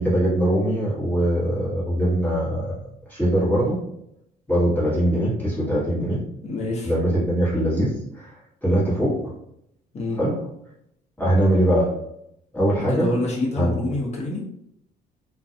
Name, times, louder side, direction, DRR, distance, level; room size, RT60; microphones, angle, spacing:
voice 1, 0.0-2.7 3.1-3.8 4.5-6.2 6.8-8.3 8.6-9.3 10.2-10.4 11.2-12.0 12.5-13.1 13.6-13.8, right 1 dB, 10° left, -8 dB, 1.2 m, -22 dB
voice 2, 6.4-6.9 9.9-10.2 12.8-14.4, left 2 dB, 40° left, -2 dB, 0.9 m, -26 dB
2.4 x 2.2 x 2.7 m, 0.75 s
cardioid pair, 110°, 17 cm